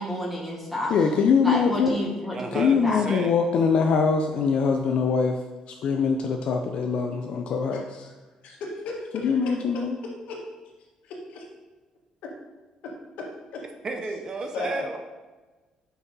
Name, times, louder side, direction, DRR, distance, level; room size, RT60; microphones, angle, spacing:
voice 1, 0.0-0.9 1.4-3.0, equal, 5° right, -2 dB, 1.3 m, -30 dB
voice 2, 0.9-2.0 2.5-5.4 5.7-8.1 9.1-9.9, left 5 dB, 55° left, 3 dB, 0.4 m, -23 dB
voice 3, 2.3-3.3 13.8-15.0, right 3 dB, 30° right, 5 dB, 0.6 m, -32 dB
voice 4, 7.7-8.1 8.4-9.8 10.3-10.4 11.0-11.5 13.2-13.3 13.5-13.6 14.5-14.9, left 3 dB, 80° left, -1 dB, 1.5 m, -36 dB
6.1 x 5.3 x 4.0 m, 1.2 s
cardioid pair, 150°, 2 cm